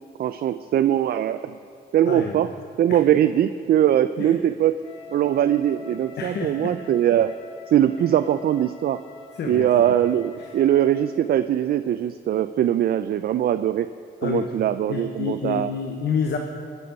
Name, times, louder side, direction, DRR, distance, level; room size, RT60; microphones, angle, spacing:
voice 1, 0.2-1.5 1.9-2.5 2.8-4.8 5.1-7.3 7.7-9.0 9.4-13.9 14.2-15.7, right 11 dB, 60° right, 11 dB, 0.4 m, -21 dB
voice 2, 2.1-2.4 2.9-3.0 4.2-4.3 6.2-6.7 9.4-9.8 14.2-14.5 14.9-16.4, left 6 dB, 70° left, 3 dB, 0.9 m, -28 dB
Wind instrument woodwind instrument, 4.8-11.2, left 4 dB, 30° left, 2.1 m, -45 dB
20.0 x 7.0 x 5.2 m, 2.4 s
cardioid pair, 85°, 18 cm